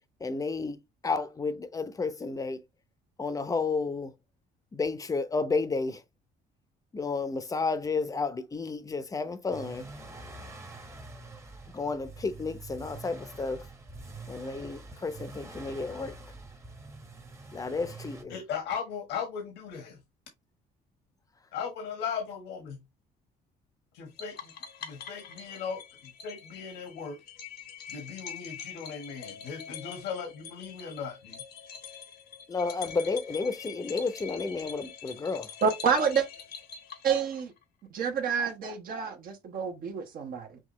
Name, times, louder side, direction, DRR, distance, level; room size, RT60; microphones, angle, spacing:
voice 1, 0.2-0.8 1.0-2.6 3.2-4.1 4.7-6.0 6.9-9.8 11.7-13.6 14.3-16.2 17.5-18.4 32.5-35.5, left 4 dB, 20° left, 0.7 m, -31 dB
sound 1, 9.5-18.2, right 2 dB, 15° right, 1.0 m, -45 dB
voice 2, 18.3-20.0 21.5-22.8 23.9-24.5 24.8-25.8 26.2-27.2 27.9-31.4, left 6 dB, 85° left, 1.4 m, -37 dB
sound 2, 24.2-37.6, left 7 dB, 70° left, 1.0 m, -45 dB
voice 3, 35.6-36.3 37.0-37.5 37.9-40.6, right 6 dB, 60° right, 1.1 m, -28 dB
6.0 x 2.4 x 3.1 m
cardioid pair, 110°, 17 cm